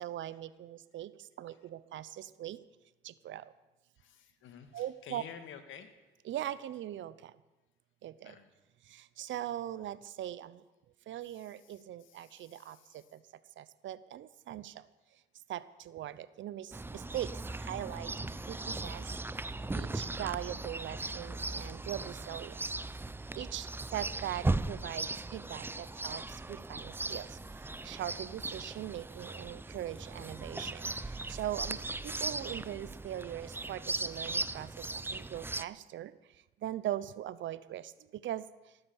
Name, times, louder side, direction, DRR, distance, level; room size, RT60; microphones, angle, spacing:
voice 1, 0.0-2.6 3.0-3.5 4.7-5.2 6.3-7.3 8.0-8.4 8.9-10.6 11.1-13.2 13.6-14.9 15.5-18.1 18.5-19.5 19.7-22.6 23.4-38.5, right 12 dB, 70° right, 17 dB, 0.7 m, -41 dB
voice 2, 4.0-5.9 8.2-8.5 11.3-13.1, left 7 dB, 80° left, 9 dB, 1.7 m, -52 dB
Chirp tweet, 16.7-35.6, right 2 dB, 10° right, 0.5 m, -38 dB
17.5 x 9.9 x 7.2 m, 1.1 s
cardioid pair, 90°, 20 cm